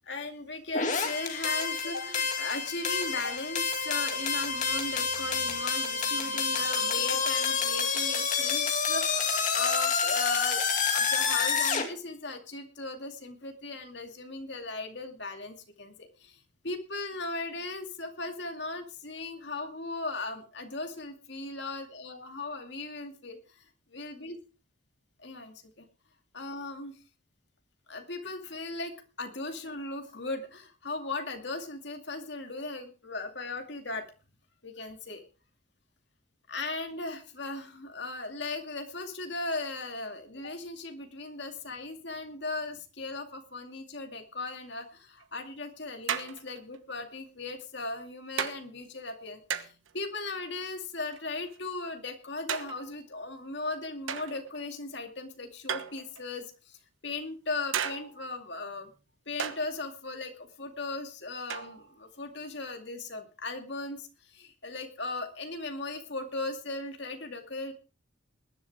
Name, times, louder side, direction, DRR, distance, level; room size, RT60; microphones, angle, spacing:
voice 1, 0.1-23.6 23.9-24.4 25.2-25.8 26.3-27.0 27.9-34.1 34.6-35.2 36.5-58.9 59.3-67.7, left 3 dB, 55° left, 5 dB, 2.4 m, -37 dB
sound 1, 0.7-11.9, left 5 dB, 40° left, 2.5 m, -28 dB
sound 2, 45.2-45.3 46.1-46.8 47.6-47.8 48.4-48.6 49.5-49.9 51.1-51.7 52.5-53.0 54.1-54.6 55.7-56.4 57.7-58.3 59.4-59.7 61.5-62.0, right 7 dB, 75° right, 1.2 m, -35 dB
20.5 x 11.0 x 3.6 m, 0.33 s
head